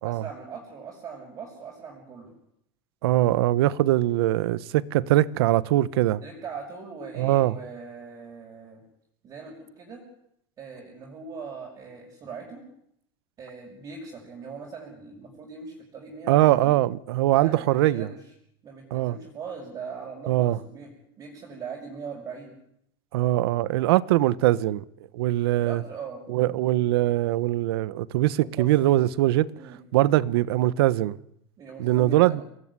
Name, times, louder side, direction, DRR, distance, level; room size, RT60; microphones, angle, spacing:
voice 1, 0.0-2.3 6.2-8.8 9.2-10.0 10.6-12.6 13.4-16.8 17.3-18.2 18.6-20.9 21.2-22.6 25.6-26.2 28.4-28.7 29.5-29.8 31.6-32.4, right 5 dB, 25° right, 6.6 m, -40 dB
voice 2, 3.0-6.2 7.2-7.6 16.3-18.1 18.9-19.2 20.3-20.6 23.1-24.8 25.1-25.8 26.3-29.5 29.9-31.2 31.8-32.4, right 15 dB, 75° right, 1.3 m, -22 dB
27.0 x 20.0 x 9.9 m
supercardioid pair, 165°, 13 cm